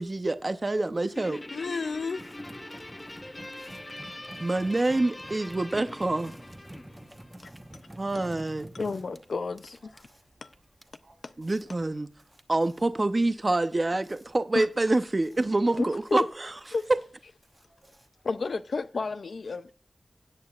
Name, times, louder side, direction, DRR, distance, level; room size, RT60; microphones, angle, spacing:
voice 1, 0.0-1.4 4.4-6.3 8.0-8.7 11.4-12.1 12.5-16.5, right 2 dB, 40° right, 0.6 m, -26 dB
Guitar, 1.2-7.8, left 1 dB, 25° left, 0.7 m, -43 dB
voice 2, 1.5-2.3 7.4-7.5 8.7-9.8 10.4-10.5 14.5-14.7 16.1-16.3 16.7-16.9 18.3-19.7, left 4 dB, 85° left, 0.4 m, -31 dB
sound 1, 2.2-18.5, right 1 dB, 20° right, 1.0 m, -50 dB
voice 3, 2.6-3.0 4.1-4.7 6.9-7.5 7.8-8.2 9.1-9.2 9.7-10.1 11.0-11.8 15.7-15.8 17.6-18.3, right 2 dB, 65° right, 4.5 m, -61 dB
18.0 x 8.5 x 2.4 m
wide cardioid pair, 60°, 0 cm